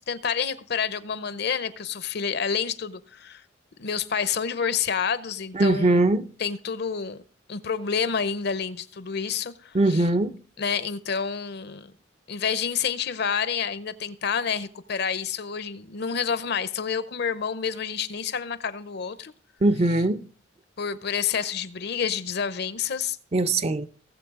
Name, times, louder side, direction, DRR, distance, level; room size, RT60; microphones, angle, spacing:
voice 1, 0.0-3.4 3.8-6.1 6.4-7.2 7.5-10.1 10.6-11.9 12.3-19.3 20.8-23.2, left 6 dB, 60° left, 0.7 m, -29 dB
voice 2, 5.5-6.3 9.7-10.3 19.6-20.2 23.3-23.9, right 2 dB, 35° right, 0.5 m, -21 dB
18.5 x 7.4 x 3.7 m
head